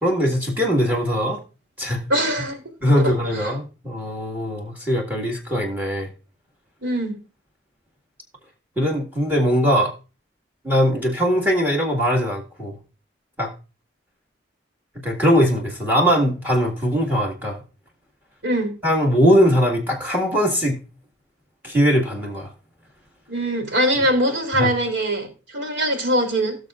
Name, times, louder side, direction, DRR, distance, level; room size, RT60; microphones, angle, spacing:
voice 1, 0.0-1.4 1.8-2.0 2.8-6.1 8.8-9.9 10.6-12.8 13.4-13.5 15.0-17.6 18.8-20.8 21.6-22.5 24.6-24.7, equal, 10° right, 1.7 m, -20 dB
voice 2, 2.1-2.6 3.0-3.1 3.4-3.5 6.8-7.2 18.4-18.7 23.3-26.6, right 1 dB, 80° right, 3.1 m, -22 dB
18.0 x 6.6 x 2.5 m
head